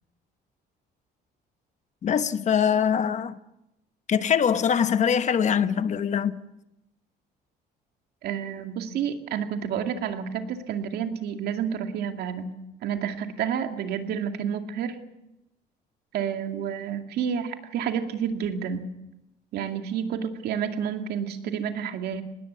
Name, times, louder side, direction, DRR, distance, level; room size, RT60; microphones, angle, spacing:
voice 1, 2.0-3.4 4.1-6.4, left 8 dB, 45° left, 1.1 m, -23 dB
voice 2, 8.2-12.5 12.8-15.0 16.1-18.9 19.5-22.2, right 8 dB, 70° right, 2.3 m, -30 dB
20.0 x 17.5 x 8.3 m
cardioid pair, 110°, 17 cm